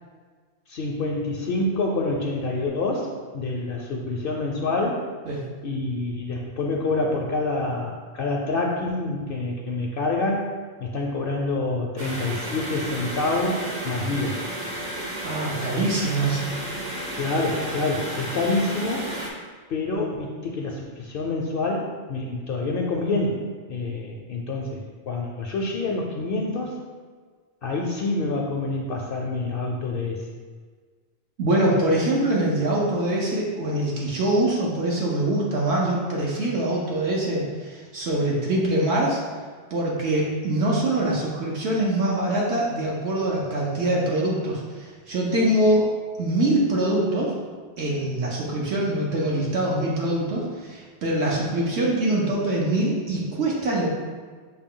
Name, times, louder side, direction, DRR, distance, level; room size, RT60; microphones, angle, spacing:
voice 1, 0.7-5.1 5.6-10.5 10.8-14.4 17.2-19.1 19.7-26.8 27.6-30.2, left 2 dB, 60° left, 0 dB, 0.6 m, -27 dB
sound 1, 12.0-19.3, right 1 dB, 40° right, 0.7 m, -32 dB
voice 2, 15.2-16.5 31.4-39.2 39.7-45.9 46.2-47.4 47.8-53.9, right 1 dB, 70° right, -4 dB, 1.0 m, -24 dB
6.4 x 2.2 x 3.7 m, 1.5 s
omnidirectional pair, 1.2 m